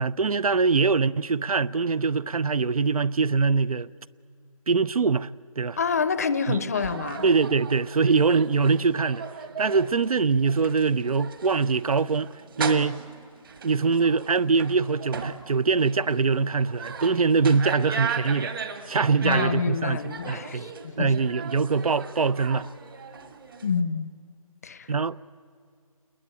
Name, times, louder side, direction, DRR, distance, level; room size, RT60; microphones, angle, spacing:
voice 1, 0.0-3.9 4.7-5.3 5.6-5.8 6.5-6.6 7.2-9.3 9.6-12.3 12.6-13.0 13.6-18.5 18.9-22.6 24.9-25.2, right 4 dB, 75° right, 0.7 m, -23 dB
voice 2, 5.8-7.2 19.2-21.1 23.6-24.1 24.6-24.9, left 5 dB, 25° left, 0.7 m, -27 dB
sound 1, 6.7-23.8, right 6 dB, 40° right, 1.6 m, -37 dB
29.0 x 21.0 x 8.9 m
hypercardioid pair, 170°, 19 cm